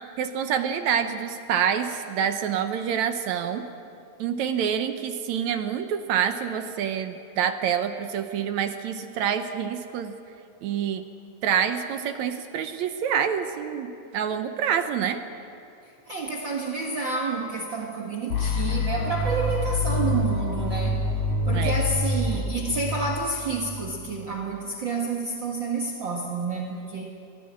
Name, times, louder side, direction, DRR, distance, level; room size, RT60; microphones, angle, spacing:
voice 1, 0.2-3.7 4.2-10.2 10.6-11.0 11.4-15.2 21.5-21.8, right 8 dB, 70° right, 8 dB, 2.0 m, -27 dB
voice 2, 16.1-21.0 21.5-27.1, right 3 dB, 45° right, 0 dB, 1.9 m, -29 dB
sound 1, 18.3-24.2, left 1 dB, 90° left, 3.8 m, -27 dB
22.0 x 16.0 x 8.7 m, 2.5 s
omnidirectional pair, 3.8 m